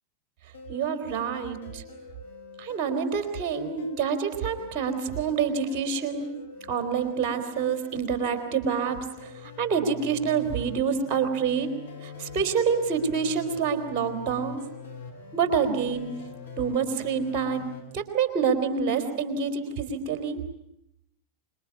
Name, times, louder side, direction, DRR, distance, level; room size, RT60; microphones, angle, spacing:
sound 1, 0.5-17.8, left 5 dB, 70° left, 5.6 m, -44 dB
voice 1, 0.7-1.8 2.6-6.3 6.7-9.0 9.2-9.3 9.6-11.7 12.0-14.6 15.3-16.1 16.6-17.7 17.9-20.4, right 6 dB, 35° right, 8 dB, 3.8 m, -27 dB
26.0 x 22.5 x 9.5 m, 0.81 s
figure-of-eight pair, 90°, 0 cm